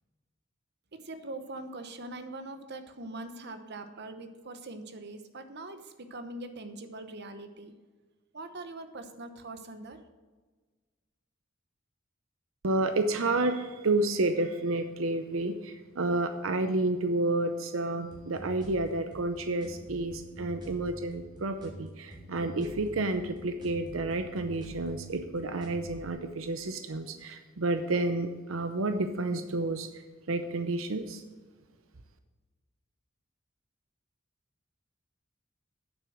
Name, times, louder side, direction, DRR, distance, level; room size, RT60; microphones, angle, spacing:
voice 1, 0.9-7.7 8.3-10.0, right 2 dB, 55° right, 8 dB, 1.0 m, -42 dB
voice 2, 12.6-29.9 30.3-31.2, right 2 dB, 90° right, 8 dB, 0.7 m, -30 dB
sound 1, 18.1-26.1, right 1 dB, 20° right, 2.9 m, -46 dB
9.0 x 7.0 x 6.3 m, 1.4 s
head